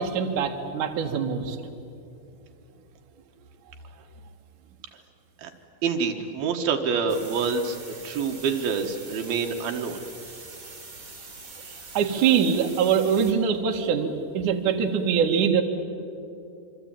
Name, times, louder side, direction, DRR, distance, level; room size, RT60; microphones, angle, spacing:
voice 1, 0.0-1.6 11.6-15.6, right 7 dB, 60° right, 3 dB, 3.0 m, -23 dB
voice 2, 5.8-7.8 8.0-10.0, right 5 dB, 85° right, 4 dB, 3.4 m, -26 dB
sound 1, 7.1-13.3, right 3 dB, 25° right, 3.7 m, -43 dB
26.5 x 24.5 x 9.0 m, 2.7 s
omnidirectional pair, 4.2 m